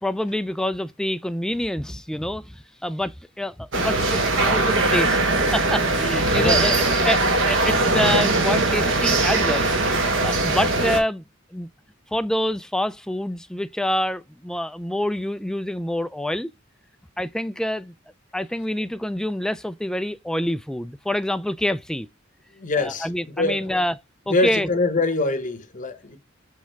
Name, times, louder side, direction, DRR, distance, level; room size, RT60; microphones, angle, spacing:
voice 1, 0.0-5.2 5.5-6.7 7.0-9.7 10.2-11.2 11.5-11.7 12.1-16.5 17.2-17.9 18.3-22.1 22.8-23.9 24.3-24.7, left 1 dB, 5° left, 0.4 m, -26 dB
sound 1, 3.7-11.0, right 2 dB, 70° right, 1.7 m, -20 dB
voice 2, 6.3-6.7 22.5-23.1 23.4-23.7 24.3-26.2, left 2 dB, 40° left, 1.0 m, -24 dB
6.4 x 3.6 x 4.5 m
head